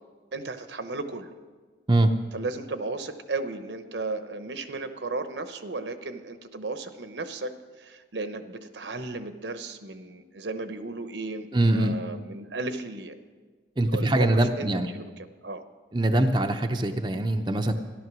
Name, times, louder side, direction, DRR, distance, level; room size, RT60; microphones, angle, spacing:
voice 1, 0.3-1.4 2.3-13.2 13.9-15.6, right 3 dB, 70° right, 9 dB, 0.9 m, -35 dB
voice 2, 11.5-12.0 13.8-14.9 15.9-17.7, right 1 dB, 25° right, 4 dB, 0.6 m, -23 dB
14.0 x 11.5 x 6.2 m, 1.4 s
head